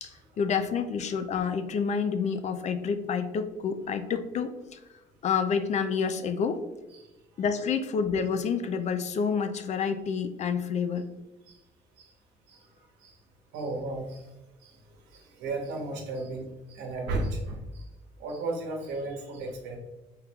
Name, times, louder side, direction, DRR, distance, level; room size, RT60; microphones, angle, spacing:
voice 1, 0.0-4.8 5.2-6.6 7.4-11.1, left 6 dB, 45° left, 9 dB, 0.4 m, -28 dB
voice 2, 13.5-14.2 14.6-14.8 15.1-17.8 18.2-19.8, right 2 dB, 85° right, 1 dB, 1.0 m, -34 dB
4.3 x 3.7 x 2.3 m, 1.0 s
cardioid pair, 110°, 17 cm